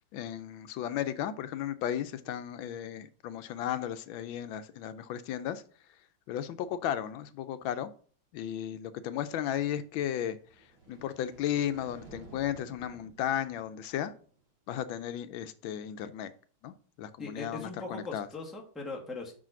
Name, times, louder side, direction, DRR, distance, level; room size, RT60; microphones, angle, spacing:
voice 1, 0.1-5.6 6.3-7.9 8.3-10.4 10.9-14.1 14.7-16.3 16.6-18.3, left 10 dB, 80° left, 1.3 m, -34 dB
sound 1, 10.2-14.4, right 3 dB, 60° right, 3.8 m, -54 dB
voice 2, 17.2-19.3, left 3 dB, ahead, 1.0 m, -40 dB
5.7 x 4.9 x 5.9 m
omnidirectional pair, 2.2 m